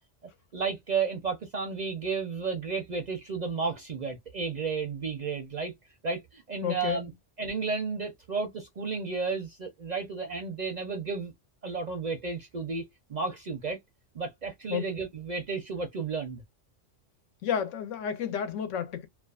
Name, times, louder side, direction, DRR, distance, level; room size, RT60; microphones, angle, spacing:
voice 1, 0.5-5.7 6.0-7.1 7.4-11.3 11.6-12.8 13.1-13.8 14.1-16.4, right 4 dB, 50° right, 0.5 m, -32 dB
voice 2, 6.6-7.1 14.7-14.9 17.4-19.1, left 8 dB, 80° left, 1.0 m, -31 dB
2.4 x 2.3 x 2.3 m
omnidirectional pair, 1.3 m